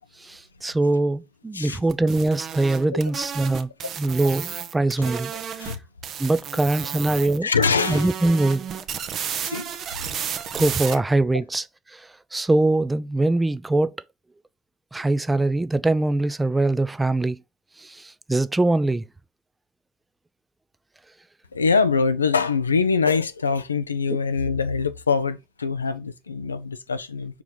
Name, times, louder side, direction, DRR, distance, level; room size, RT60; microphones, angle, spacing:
voice 1, 0.2-3.7 4.0-5.7 6.2-7.5 7.9-8.7 10.5-11.6 11.9-14.0 14.9-17.4 17.8-19.0, right 2 dB, 15° right, 0.5 m, -23 dB
sound 1, 1.9-5.8 6.0-7.4 7.6-10.9, right 8 dB, 50° right, 0.9 m, -32 dB
voice 2, 7.2-8.1 9.4-9.7 21.5-27.4, left 5 dB, 85° left, 0.5 m, -24 dB
5.7 x 4.7 x 3.9 m
figure-of-eight pair, 60°, 0 cm